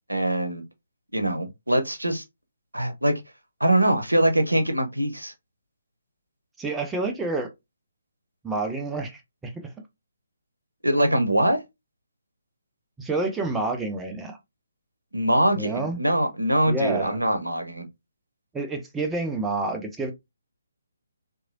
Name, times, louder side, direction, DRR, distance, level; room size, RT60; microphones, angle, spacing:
voice 1, 0.1-0.6 1.1-2.2 2.7-3.2 3.6-5.3 10.8-11.6 15.1-17.9, right 1 dB, 90° right, 0.7 m, -23 dB
voice 2, 6.6-7.5 8.4-9.7 13.0-14.4 15.6-16.0 16.7-17.2 18.5-20.1, right 2 dB, 10° right, 0.4 m, -28 dB
2.9 x 2.5 x 2.4 m
figure-of-eight pair, 140°, 0 cm